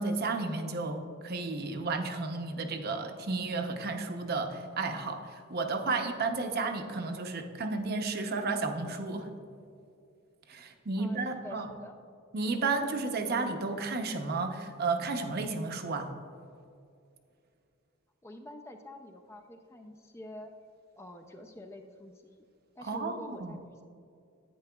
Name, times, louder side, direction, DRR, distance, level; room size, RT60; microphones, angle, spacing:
voice 1, 0.0-9.3 10.5-11.7 12.3-16.1 22.8-23.5, right 3 dB, 50° right, 6 dB, 0.7 m, -32 dB
voice 2, 11.0-11.9 18.2-20.5 21.0-22.4 22.8-23.8, left 1 dB, 15° left, 4 dB, 0.4 m, -47 dB
10.5 x 9.1 x 2.3 m, 2.5 s
head